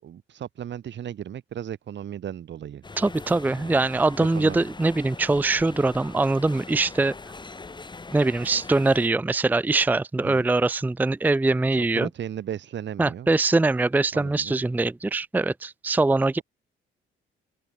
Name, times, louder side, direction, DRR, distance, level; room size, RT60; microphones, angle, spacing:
voice 1, 0.0-2.8 3.3-3.8 4.2-4.6 10.2-10.5 11.7-13.3 14.1-14.6, right 10 dB, 65° right, 6.4 m, -36 dB
sound 1, 2.8-9.1, left 3 dB, 25° left, 2.8 m, -42 dB
voice 2, 3.0-7.1 8.1-12.1 13.0-16.4, right 3 dB, 10° right, 0.5 m, -22 dB
cardioid pair, 90°, 20 cm